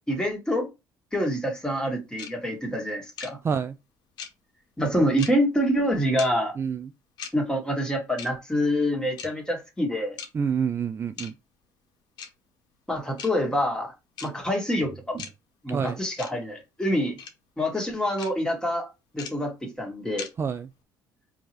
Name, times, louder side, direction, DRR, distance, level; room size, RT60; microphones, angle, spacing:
voice 1, 0.1-0.7 1.1-3.4 4.8-6.5 7.3-10.2 12.9-13.9 14.2-15.2 15.6-17.2 17.6-18.9 19.1-20.3, equal, 10° left, 1.7 m, -26 dB
sound 1, 2.2-2.3 3.2-3.3 4.2-4.3 5.2-5.3 6.2-6.3 7.2-7.3 8.2-8.3 9.2-9.3 10.2-10.3 11.2-11.3 12.2-12.3 13.2-13.3 14.2-14.3 15.2-15.3 16.2-16.3 17.2-17.3 18.2-18.3 19.2-19.3 20.2-20.3, left 6 dB, 65° left, 1.0 m, -37 dB
voice 2, 3.4-3.8 6.6-6.9 10.3-11.3 15.1-15.2 15.7-16.0 20.4-20.7, right 6 dB, 30° right, 0.3 m, -28 dB
4.5 x 2.8 x 3.1 m
supercardioid pair, 90°, 8 cm